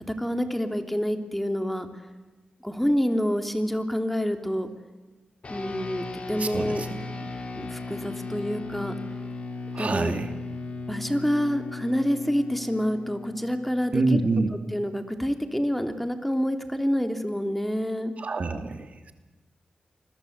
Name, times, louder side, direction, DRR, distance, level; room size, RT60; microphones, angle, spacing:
voice 1, 0.2-1.9 2.6-4.7 5.5-6.8 7.5-8.9 9.8-10.1 10.9-14.2 14.7-18.1, equal, 5° left, 7 dB, 3.2 m, -27 dB
sound 1, 5.4-15.1, left 3 dB, 50° left, 4.9 m, -37 dB
voice 2, 6.4-6.9 9.7-10.3 13.9-14.5 18.2-19.1, right 3 dB, 55° right, 7 dB, 2.5 m, -26 dB
28.5 x 22.0 x 8.2 m, 1.2 s
cardioid pair, 60°, 3 cm